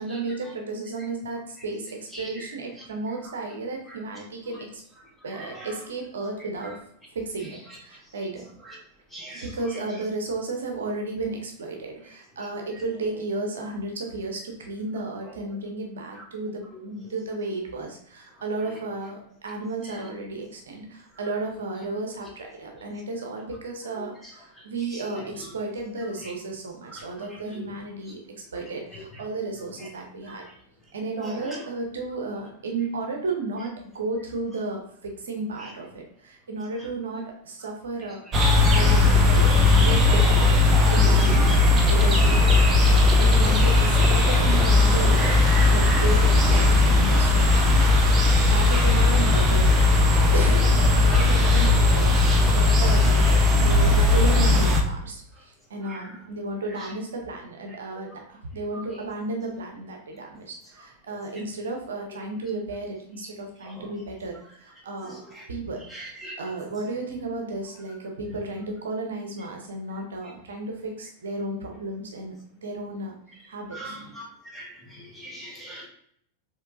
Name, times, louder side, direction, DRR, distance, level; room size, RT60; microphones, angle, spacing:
voice 1, 0.0-4.8 5.2-6.8 7.1-8.5 9.3-28.2 28.5-30.4 30.9-38.2 38.7-40.6 40.9-49.7 50.3-65.2 65.5-65.8 66.4-73.2 73.5-74.0, right 2 dB, 65° right, 2 dB, 0.6 m, -33 dB
voice 2, 5.4-5.7 9.1-9.4 42.9-43.0 48.4-48.5 55.9-56.0 65.9-66.3 73.7-74.3 74.5-75.9, right 1 dB, 5° left, -3 dB, 1.2 m, -40 dB
sound 1, 38.3-54.8, left 3 dB, 25° right, 0.6 m, -18 dB
4.4 x 3.1 x 2.5 m, 0.67 s
figure-of-eight pair, 90°, 0 cm